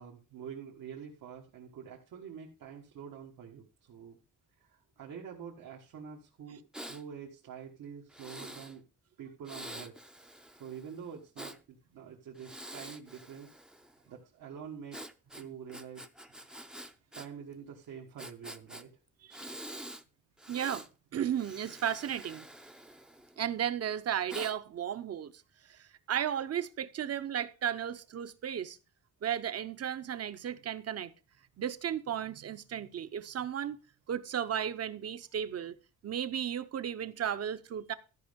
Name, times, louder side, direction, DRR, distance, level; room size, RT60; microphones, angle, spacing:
voice 1, 0.0-4.2 4.6-8.8 9.2-10.0 10.6-13.5 13.8-15.0 15.3-16.1 17.1-18.9, right 7 dB, 85° right, 1.7 m, -46 dB
Breathing, 6.7-7.0 8.1-8.7 9.4-11.6 12.3-14.0 14.9-17.3 17.5-17.6 18.2-18.8 19.3-20.0 20.4-20.9 21.3-23.5 24.3-24.5, right 1 dB, ahead, 0.5 m, -46 dB
voice 2, 20.5-20.8 21.1-22.4 23.4-25.3 25.7-28.8 29.2-31.1 31.6-33.8 34.1-35.7 36.0-37.9, right 9 dB, 50° right, 0.7 m, -34 dB
13.5 x 5.4 x 5.2 m
wide cardioid pair, 165°, 33 cm